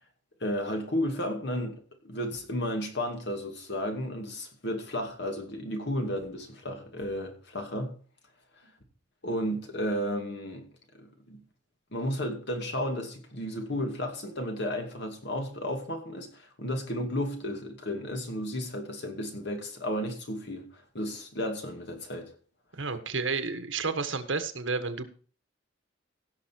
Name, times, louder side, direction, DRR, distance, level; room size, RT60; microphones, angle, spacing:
voice 1, 0.4-7.9 9.2-10.7 10.9-11.4 11.9-22.3, equal, 60° left, 2.5 m, -33 dB
voice 2, 22.7-25.1, right 4 dB, 80° right, 1.5 m, -31 dB
16.5 x 6.3 x 4.6 m
head